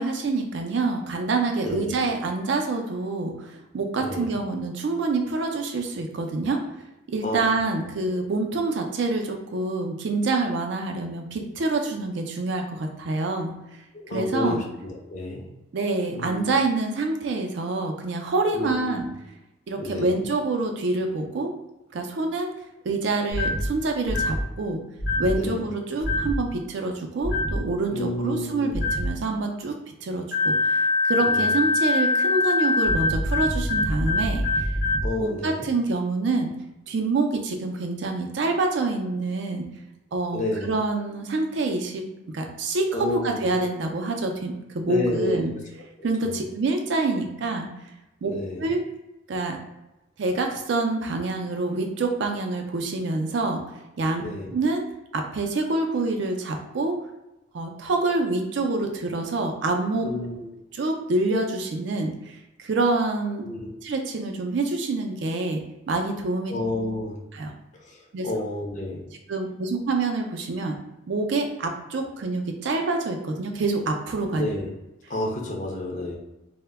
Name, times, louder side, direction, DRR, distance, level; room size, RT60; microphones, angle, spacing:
voice 1, 0.0-6.6 7.1-13.5 14.1-14.6 15.7-19.1 19.7-21.5 21.9-22.5 22.8-24.8 25.2-29.8 30.0-34.7 35.2-36.5 36.9-39.7 40.1-42.0 42.3-45.5 46.0-47.7 48.2-48.3 48.6-48.8 49.3-49.6 50.2-54.2 54.5-54.8 55.1-57.0 57.5-60.1 60.7-63.4 63.8-66.5 67.3-67.5 68.1-68.3 69.3-70.8 71.1-74.5, right 3 dB, 65° right, 3 dB, 0.4 m, -26 dB
voice 2, 1.6-2.0 4.0-4.3 7.2-7.4 8.0-8.2 13.9-15.5 16.1-16.4 18.5-19.1 19.8-20.2 25.4-25.7 27.9-28.8 31.2-31.6 35.0-35.7 40.3-40.7 42.9-43.5 44.9-45.5 46.0-46.4 48.2-48.6 54.2-54.5 60.0-60.5 63.4-63.8 66.5-67.2 67.8-69.0 74.3-74.7 75.1-76.2, left 1 dB, 40° left, -1 dB, 0.5 m, -30 dB
sound 1, 23.3-23.7 24.1-24.4 25.0-25.4 26.0-26.4 27.2-27.6 28.7-29.1 30.3-35.1, left 2 dB, 60° left, 0.9 m, -23 dB
2.1 x 2.1 x 3.3 m, 0.96 s
head